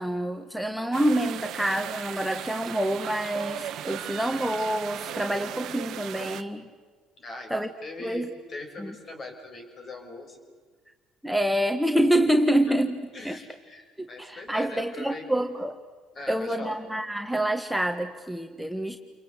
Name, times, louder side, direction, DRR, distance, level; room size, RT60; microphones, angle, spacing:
voice 1, 0.0-6.7 7.5-7.7 8.0-8.3 8.8-8.9 11.2-13.4 14.0-15.8 16.3-19.0, right 1 dB, ahead, 4 dB, 1.6 m, -27 dB
sound 1, 0.9-6.4, right 11 dB, 65° right, 1.2 m, -37 dB
voice 2, 7.2-7.5 7.8-10.4 12.7-12.8 13.1-15.3 16.1-16.8, left 2 dB, 45° left, 4 dB, 6.0 m, -41 dB
28.5 x 23.5 x 8.2 m, 1.4 s
supercardioid pair, 70°, 0 cm